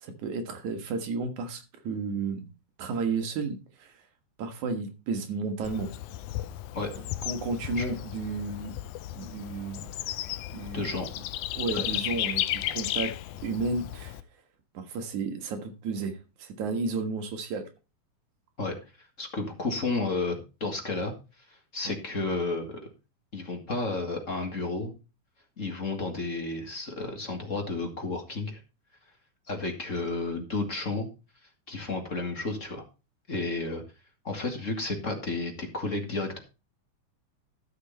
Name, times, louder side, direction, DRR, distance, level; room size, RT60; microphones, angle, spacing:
voice 1, 0.0-2.4 2.8-3.9 4.4-5.9 7.2-8.7 9.1-9.9 10.5-10.9 11.5-13.2 13.4-14.2 14.7-17.7, right 4 dB, 70° right, 2.9 m, -32 dB
Bird / Insect, 5.6-14.2, left 14 dB, 80° left, 2.1 m, -34 dB
voice 2, 10.7-11.1 11.7-12.0 18.6-21.1 21.5-22.8 23.3-24.9 25.6-28.6 29.5-31.1 31.7-32.8 33.3-33.8 34.2-36.4, left 3 dB, 30° left, 1.9 m, -32 dB
13.0 x 6.8 x 4.2 m
omnidirectional pair, 3.6 m